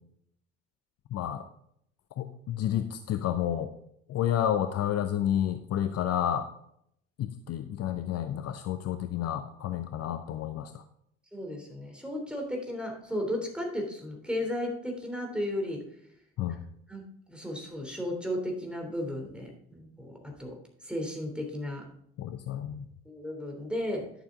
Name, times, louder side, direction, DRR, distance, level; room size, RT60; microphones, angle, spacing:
voice 1, 1.1-1.4 2.2-3.7 4.1-6.5 7.2-10.8 16.4-16.6 22.2-22.8, left 10 dB, 45° left, 9 dB, 0.7 m, -30 dB
voice 2, 11.3-15.8 16.9-20.6 20.8-21.9 23.0-24.1, left 1 dB, 5° right, 1 dB, 3.2 m, -34 dB
11.0 x 7.0 x 3.8 m, 0.73 s
figure-of-eight pair, 50°, 34 cm